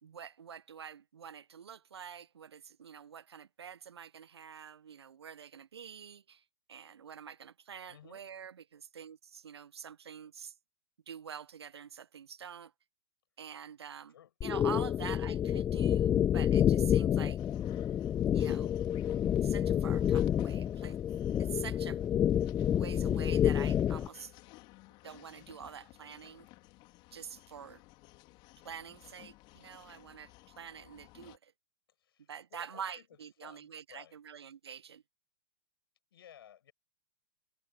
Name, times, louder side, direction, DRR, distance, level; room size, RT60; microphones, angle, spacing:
voice 1, 0.0-10.5 11.1-12.7 13.4-14.1 14.4-17.4 18.3-18.8 19.4-21.0 21.4-22.0 22.7-24.3 25.0-26.5 27.1-27.8 28.6-31.5 32.3-35.0, right 7 dB, 65° right, 1.2 m, -46 dB
voice 2, 7.9-8.3 14.1-14.3 32.0-33.0 33.4-34.1 36.1-36.7, left 10 dB, 55° left, 7.9 m, -56 dB
sound 1, 14.4-24.1, left 10 dB, 15° left, 0.5 m, -29 dB
sound 2, 17.4-31.4, left 23 dB, 35° left, 4.3 m, -55 dB
figure-of-eight pair, 110°, 14 cm